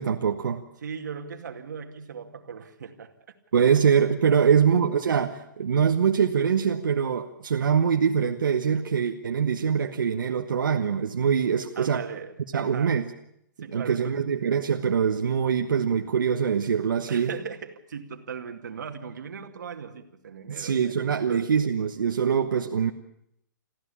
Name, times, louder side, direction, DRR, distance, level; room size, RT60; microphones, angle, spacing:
voice 1, 0.0-0.6 3.5-12.0 12.5-13.0 13.7-17.3 20.5-22.9, right 7 dB, 85° right, 4 dB, 1.3 m, -23 dB
voice 2, 0.8-3.4 4.3-4.6 11.8-13.0 13.6-14.3 17.1-20.8 21.3-21.5, right 6 dB, 65° right, 5 dB, 2.4 m, -38 dB
24.0 x 15.0 x 8.6 m, 0.78 s
hypercardioid pair, 180°, 11 cm